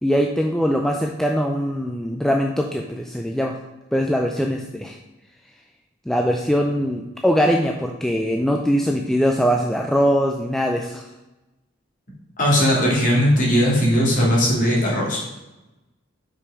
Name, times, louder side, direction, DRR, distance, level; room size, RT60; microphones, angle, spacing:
voice 1, 0.0-3.5 3.9-5.0 6.1-11.1, equal, ahead, 1 dB, 0.3 m, -21 dB
voice 2, 12.4-15.2, equal, 40° left, -4 dB, 2.2 m, -18 dB
6.0 x 4.9 x 4.7 m, 1.0 s
head